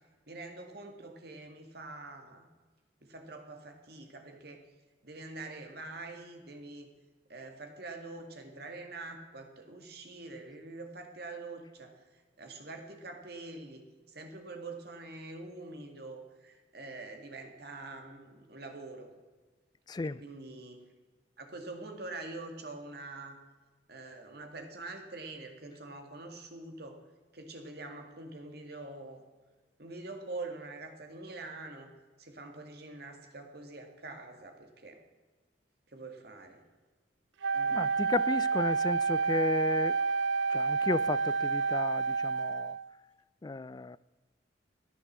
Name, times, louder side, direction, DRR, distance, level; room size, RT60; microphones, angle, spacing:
voice 1, 0.3-2.5 3.0-4.6 5.0-6.9 7.3-12.0 12.4-13.8 14.1-19.1 20.2-20.8 21.4-23.4 23.9-27.0 27.3-29.2 29.8-31.9 32.2-35.0 35.9-36.6 37.5-37.8, right 2 dB, 60° right, 2.2 m, -45 dB
voice 2, 19.9-20.2 37.7-40.0 40.5-42.8 43.4-44.0, left 3 dB, 20° left, 0.3 m, -33 dB
Wind instrument woodwind instrument, 37.4-42.9, right 4 dB, 80° right, 0.5 m, -29 dB
14.5 x 9.7 x 7.4 m
head